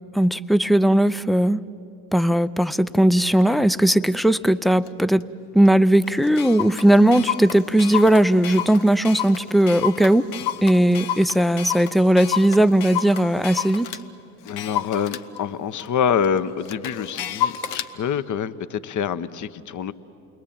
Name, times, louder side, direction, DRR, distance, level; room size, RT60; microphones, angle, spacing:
voice 1, 0.1-1.6 2.1-5.2 5.5-10.3 10.6-13.9, right 1 dB, ahead, 15 dB, 0.5 m, -18 dB
Clock, 3.4-3.5 4.0-4.3 4.9-5.0 5.2-5.3 5.7-5.8 6.0-14.0 14.5-17.9, left 10 dB, 75° left, 1.0 m, -30 dB
voice 2, 14.4-19.9, left 7 dB, 40° left, 14 dB, 1.0 m, -26 dB
28.5 x 21.5 x 8.8 m, 2.7 s
hypercardioid pair, 65°, 46 cm